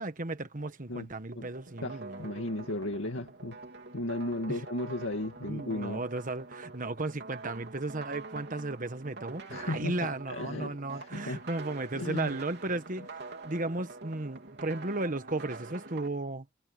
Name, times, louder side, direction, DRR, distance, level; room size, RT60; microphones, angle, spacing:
voice 1, 0.0-2.3 4.5-4.6 5.4-13.0 13.4-16.4, right 2 dB, 40° right, 1.3 m, -35 dB
sound 1, 1.3-16.1, right 3 dB, 55° right, 3.6 m, -46 dB
voice 2, 1.8-3.6 3.9-6.0 9.5-11.4 11.9-12.3, left 1 dB, 80° left, 2.2 m, -35 dB
head